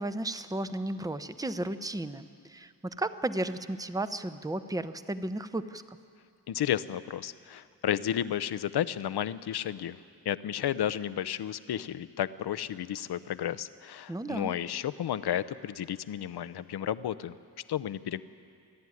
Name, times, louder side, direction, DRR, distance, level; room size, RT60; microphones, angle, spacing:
voice 1, 0.0-5.8 14.1-14.5, right 1 dB, 10° right, 11 dB, 0.8 m, -34 dB
voice 2, 6.5-10.0 10.2-17.3 17.7-18.2, left 10 dB, 70° left, 15 dB, 0.7 m, -32 dB
26.5 x 11.0 x 9.6 m, 2.5 s
cardioid pair, 65°, 41 cm